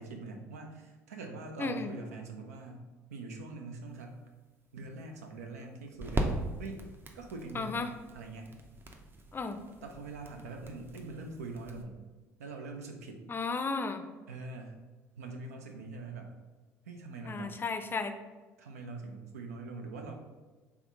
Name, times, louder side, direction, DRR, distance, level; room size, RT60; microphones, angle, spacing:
voice 1, 0.0-4.2 4.7-6.8 7.1-8.5 9.8-12.0 12.4-13.2 14.3-14.8 15.2-16.3 16.9-17.6 18.6-20.1, right 3 dB, 80° right, 3 dB, 0.5 m, -43 dB
voice 2, 1.6-1.9 7.5-7.9 9.3-9.6 13.3-14.0 17.3-18.1, left 4 dB, 25° left, 8 dB, 0.4 m, -34 dB
sound 1, 3.9-11.8, right 1 dB, 25° right, 0.6 m, -40 dB
3.5 x 3.1 x 3.5 m, 1.3 s
hypercardioid pair, 55°, 8 cm